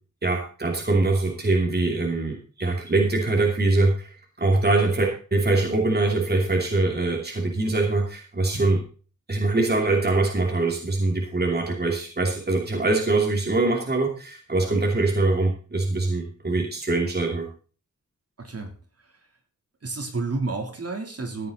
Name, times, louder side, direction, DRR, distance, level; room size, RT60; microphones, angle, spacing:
voice 1, 0.2-4.1 4.4-8.8 9.3-17.5, right 2 dB, 30° right, 1 dB, 2.7 m, -23 dB
voice 2, 18.4-18.7 19.0-19.1 19.8-21.5, right 3 dB, 50° right, 3 dB, 3.3 m, -30 dB
15.5 x 9.7 x 4.0 m, 0.38 s
wide cardioid pair, 120°, 30 cm